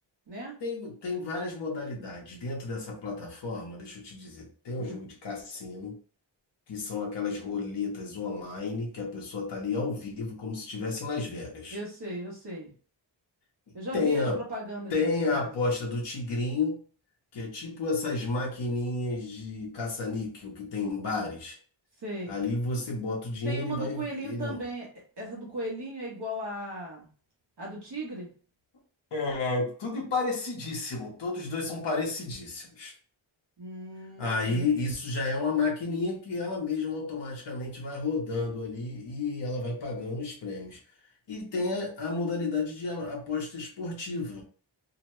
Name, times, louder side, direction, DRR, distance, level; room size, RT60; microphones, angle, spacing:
voice 1, 0.6-6.0 6.7-11.8 13.9-14.4 14.9-16.8 17.3-21.6 22.3-24.6 29.1-32.9 34.2-40.8 41.3-44.4, left 3 dB, 60° left, -2 dB, 0.9 m, -31 dB
voice 2, 11.7-12.7 13.7-15.5 22.0-22.4 23.4-24.9 25.2-27.1 27.6-28.3 33.6-34.8, right 1 dB, 55° right, -4 dB, 1.0 m, -37 dB
2.8 x 2.1 x 3.0 m, 0.41 s
wide cardioid pair, 155°, 48 cm